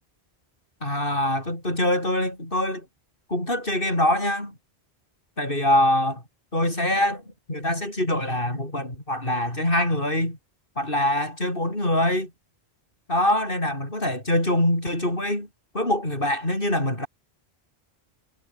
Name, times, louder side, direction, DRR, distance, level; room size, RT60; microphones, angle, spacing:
voice 1, 0.8-2.9 3.3-4.5 5.4-6.2 6.5-7.2 7.5-10.4 10.8-12.3 13.1-15.5 15.7-17.1, left 1 dB, 55° left, 7.7 m, -24 dB
omnidirectional pair, 1.1 m